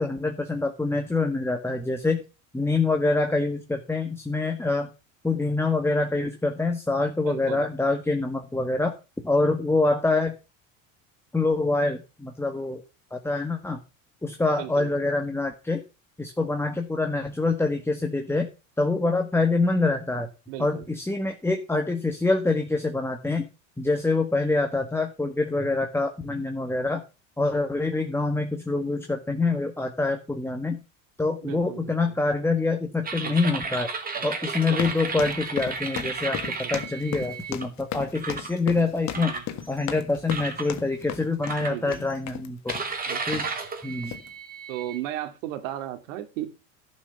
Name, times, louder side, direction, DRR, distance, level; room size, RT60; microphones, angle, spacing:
voice 1, 0.0-2.2 2.5-4.9 5.2-8.9 9.2-10.3 11.3-12.8 13.1-13.8 14.2-15.8 16.2-18.5 18.8-20.3 20.6-23.5 23.8-27.0 27.4-30.8 31.2-33.9 34.2-36.4 36.7-39.3 39.7-42.7 43.3-43.5 43.8-44.1, left 3 dB, 5° left, 4 dB, 1.7 m, -25 dB
voice 2, 7.2-7.6 14.6-14.9 20.5-20.7 31.4-31.9 33.2-33.3 34.1-34.3 34.7-34.8 36.4-36.6 39.1-39.4 41.7-42.0 43.1-43.2 44.7-46.5, right 13 dB, 80° right, 8 dB, 2.6 m, -35 dB
sound 1, 33.0-37.6 38.2-38.5 39.1-39.9 40.3-40.7 41.4-42.1 42.7-45.0, right 4 dB, 20° right, 2.8 m, -33 dB
sound 2, 34.7-42.9 43.3-43.6 44.0-44.3, left 10 dB, 45° left, 1.8 m, -36 dB
11.0 x 6.2 x 7.0 m, 0.30 s
supercardioid pair, 105°, 39 cm